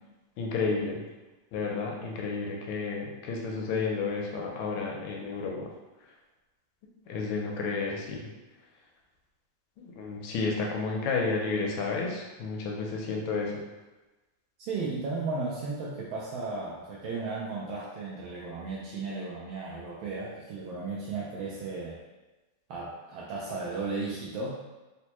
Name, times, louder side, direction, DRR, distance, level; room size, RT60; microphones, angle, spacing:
voice 1, 0.4-1.0 1.5-5.7 7.1-8.3 9.8-13.6, left 4 dB, 80° left, -1 dB, 1.4 m, -31 dB
voice 2, 14.6-22.0 22.7-24.5, right 3 dB, 80° right, -5 dB, 1.3 m, -35 dB
4.1 x 2.1 x 2.9 m, 1.1 s
omnidirectional pair, 2.3 m